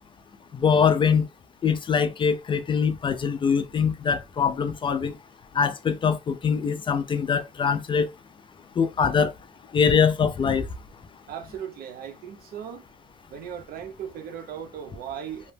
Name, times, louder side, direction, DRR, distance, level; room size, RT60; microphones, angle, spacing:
voice 1, 0.5-1.3 1.6-5.1 5.5-8.1 8.8-9.3 9.7-10.7, left 6 dB, 30° left, 0.3 m, -23 dB
voice 2, 11.3-12.8 13.3-15.5, right 8 dB, 65° right, 0.7 m, -37 dB
2.8 x 2.0 x 3.2 m
cardioid pair, 110°, 17 cm